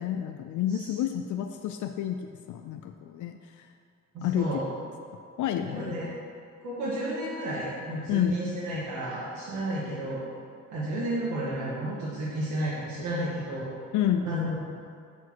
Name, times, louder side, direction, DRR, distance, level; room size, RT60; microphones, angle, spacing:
voice 1, 0.0-2.2 2.5-3.7 4.2-4.6 5.4-6.0 8.1-8.3 13.9-14.3, left 10 dB, 75° left, 5 dB, 0.5 m, -29 dB
voice 2, 4.1-4.7 5.7-6.1 6.6-10.2 10.7-13.7 14.2-14.6, right 1 dB, 75° right, -9 dB, 2.0 m, -32 dB
8.4 x 4.6 x 6.2 m, 2.3 s
cardioid pair, 90°, 30 cm